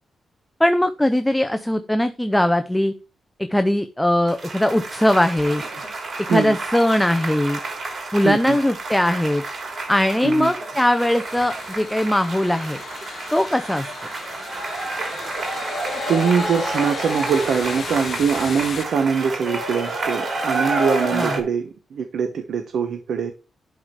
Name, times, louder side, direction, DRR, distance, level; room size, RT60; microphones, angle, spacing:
voice 1, 0.6-2.9 3.4-5.6 6.3-7.6 8.1-9.4 9.9-12.8 13.3-13.9 21.1-21.3, left 1 dB, 5° left, 0.5 m, -20 dB
sound 1, 4.3-21.4, right 2 dB, 45° right, 3.2 m, -29 dB
voice 2, 8.2-8.6 10.2-10.5 16.1-23.3, right 6 dB, 75° right, 1.0 m, -23 dB
sound 2, 10.8-18.8, left 6 dB, 50° left, 0.7 m, -37 dB
11.5 x 4.8 x 4.6 m
wide cardioid pair, 140°, 0 cm